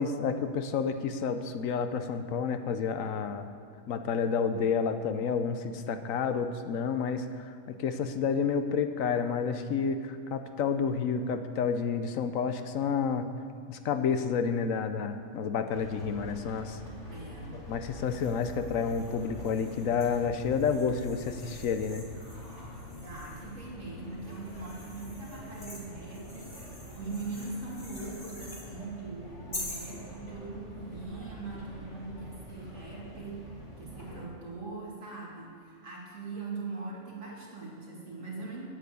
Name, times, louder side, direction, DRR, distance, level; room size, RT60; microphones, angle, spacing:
voice 1, 0.0-3.5 3.9-7.5 7.8-13.3 13.7-16.8 17.7-22.0, left 6 dB, 75° left, 9 dB, 1.1 m, -30 dB
sound 1, 15.7-34.3, equal, 60° left, 3.2 m, -45 dB
voice 2, 17.1-17.5 22.9-38.7, right 3 dB, 65° right, -5 dB, 2.9 m, -41 dB
sound 2, 18.0-23.6 24.2-28.7 29.5-29.9, left 1 dB, 40° left, 2.9 m, -47 dB
9.3 x 8.9 x 8.4 m, 2.2 s
omnidirectional pair, 1.4 m